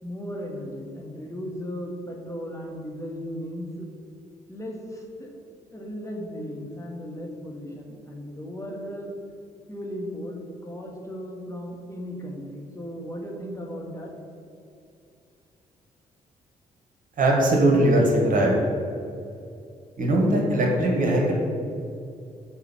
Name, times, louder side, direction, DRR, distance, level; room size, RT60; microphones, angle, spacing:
voice 1, 0.0-3.9 4.5-5.3 5.7-9.1 9.7-14.1, equal, 15° left, -1 dB, 1.6 m, -36 dB
voice 2, 17.2-18.6 20.0-21.3, right 1 dB, 45° right, -1 dB, 1.5 m, -20 dB
6.4 x 4.3 x 5.8 m, 2.5 s
figure-of-eight pair, 40°, 19 cm